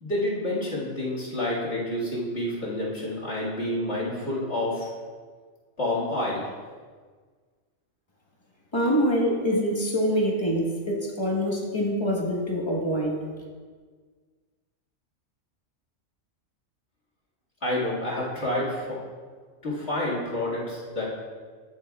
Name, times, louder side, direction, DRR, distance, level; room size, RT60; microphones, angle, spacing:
voice 1, 0.0-4.9 5.8-6.5 17.6-18.9 19.6-21.1, left 1 dB, 55° left, -6 dB, 2.3 m, -28 dB
voice 2, 8.7-13.2, equal, 20° left, -2 dB, 1.4 m, -25 dB
14.5 x 6.4 x 2.3 m, 1.5 s
omnidirectional pair, 1.3 m